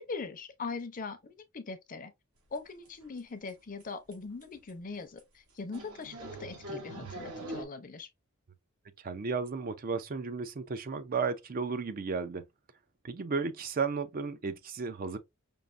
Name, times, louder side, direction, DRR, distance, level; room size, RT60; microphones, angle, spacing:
voice 1, 0.0-2.1 2.5-8.1, left 4 dB, 40° left, 0.6 m, -41 dB
sound 1, 2.5-2.6 2.9-3.2 3.5-3.6 3.8-3.9 4.1-4.2 4.4-4.7 5.2-5.3 5.7-7.6, right 1 dB, 85° right, 2.3 m, -42 dB
voice 2, 9.0-12.4 13.0-15.2, right 4 dB, 40° right, 0.4 m, -34 dB
5.3 x 2.5 x 2.4 m
head